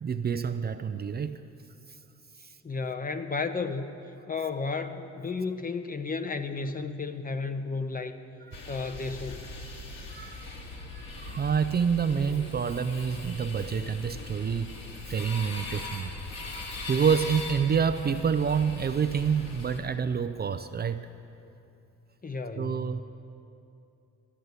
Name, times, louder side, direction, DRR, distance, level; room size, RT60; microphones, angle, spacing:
voice 1, 0.0-1.4 2.4-2.6 8.5-8.8 10.1-16.1 16.4-21.1 22.6-23.0, right 6 dB, 35° right, 10 dB, 0.5 m, -28 dB
voice 2, 2.6-8.2 8.7-9.5 22.2-22.9, left 4 dB, 30° left, 9 dB, 0.9 m, -33 dB
sound 1, 8.5-19.8, left 3 dB, 60° left, 2.5 m, -40 dB
12.5 x 10.5 x 8.1 m, 2.7 s
cardioid pair, 90°, 30 cm